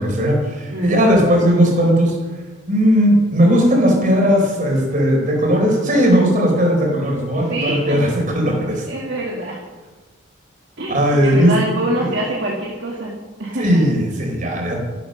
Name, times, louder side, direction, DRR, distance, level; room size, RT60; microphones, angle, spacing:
voice 1, 0.0-2.2 2.7-8.8 10.9-11.6 12.0-12.1 13.6-14.8, equal, 40° right, 0 dB, 4.2 m, -17 dB
voice 2, 0.7-1.1 7.5-8.1 8.9-9.6 10.8-13.1 13.4-13.8, right 1 dB, 55° right, -3 dB, 2.1 m, -25 dB
13.5 x 12.0 x 6.5 m, 1.3 s
head